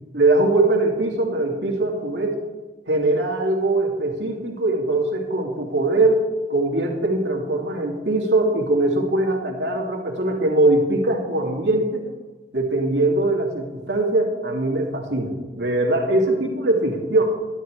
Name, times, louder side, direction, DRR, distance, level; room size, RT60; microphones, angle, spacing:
voice 1, 0.1-2.4 2.9-12.1 12.5-17.2, right 2 dB, 75° right, 0 dB, 2.7 m, -21 dB
12.5 x 12.0 x 4.8 m, 1.3 s
head